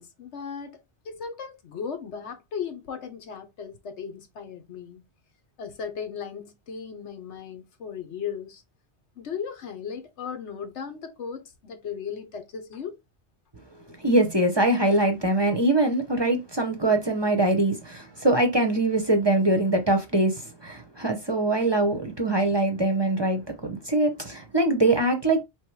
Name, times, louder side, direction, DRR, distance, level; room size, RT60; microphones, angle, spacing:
voice 1, 0.0-5.0 5.6-8.6 9.2-13.0, left 7 dB, 85° left, 1.2 m, -36 dB
voice 2, 14.0-20.3 20.6-25.4, right 2 dB, 25° right, 0.7 m, -23 dB
3.3 x 3.1 x 4.6 m
omnidirectional pair, 1.1 m